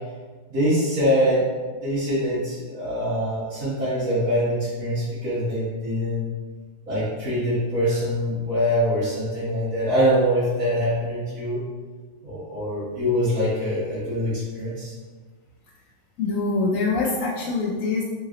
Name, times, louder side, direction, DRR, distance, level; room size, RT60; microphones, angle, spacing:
voice 1, 0.5-1.4 1.8-6.3 6.8-11.6 12.2-14.9, equal, 50° right, -12 dB, 1.7 m, -24 dB
voice 2, 16.2-18.0, left 3 dB, 70° left, -3 dB, 0.8 m, -24 dB
3.8 x 3.0 x 3.7 m, 1.4 s
omnidirectional pair, 2.0 m